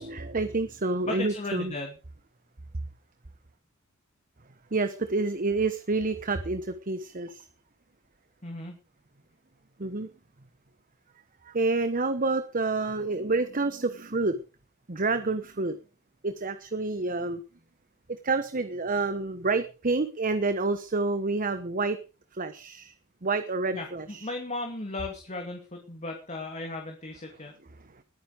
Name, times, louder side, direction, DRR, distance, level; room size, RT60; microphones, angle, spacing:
voice 1, 0.0-1.7 4.7-7.5 9.8-10.1 11.4-14.4 14.9-15.8 16.2-17.4 18.1-22.0 22.3-22.9 23.2-24.3, right 3 dB, 40° right, 10 dB, 1.1 m, -28 dB
voice 2, 1.0-2.0 8.4-8.8 23.7-27.6, left 2 dB, 35° left, 3 dB, 2.7 m, -36 dB
20.5 x 9.5 x 5.1 m, 0.34 s
head